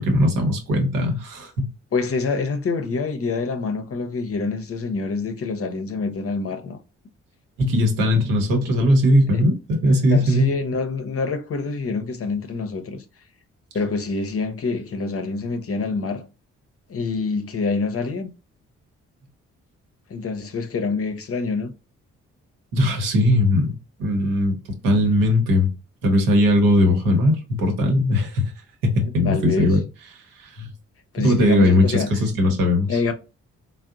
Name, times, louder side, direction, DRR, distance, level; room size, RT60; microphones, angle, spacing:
voice 1, 0.0-1.7 7.6-10.5 22.7-24.6 24.8-25.7 26.0-28.5 28.8-29.8 30.4-30.7 31.2-33.0, left 1 dB, 75° right, 0.9 m, -19 dB
voice 2, 1.9-6.8 9.3-9.4 10.1-13.0 13.7-16.2 16.9-18.3 20.1-21.7 29.0-29.8 31.1-32.1 32.5-32.6 32.9-33.1, left 4 dB, 40° left, 0.7 m, -26 dB
3.5 x 2.1 x 2.4 m
hypercardioid pair, 40°, 34 cm